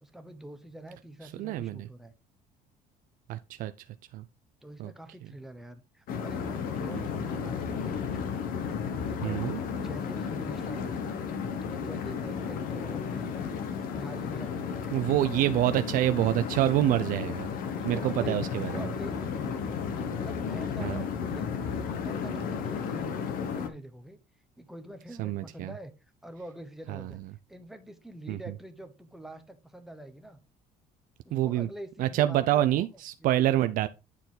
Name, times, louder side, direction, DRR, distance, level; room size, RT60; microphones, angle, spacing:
voice 1, 0.0-2.1 4.6-8.4 9.2-9.5 9.8-11.1 11.6-13.6 13.9-15.2 17.7-24.2 24.6-25.9 26.2-27.2 27.5-30.4 31.2-32.8 33.2-33.6, right 1 dB, ahead, 1.0 m, -45 dB
voice 2, 1.2-1.9 3.3-3.7 4.1-4.2 4.8-4.9 6.9-7.1 9.2-9.6 14.9-17.5 17.8-18.9 20.8-21.0 25.2-25.7 26.9-27.3 28.3-28.4 31.3-31.7 32.0-33.9, right 13 dB, 65° right, 0.5 m, -27 dB
sound 1, 6.1-23.7, left 6 dB, 70° left, 1.1 m, -33 dB
9.7 x 4.5 x 3.9 m
cardioid pair, 150°, 15 cm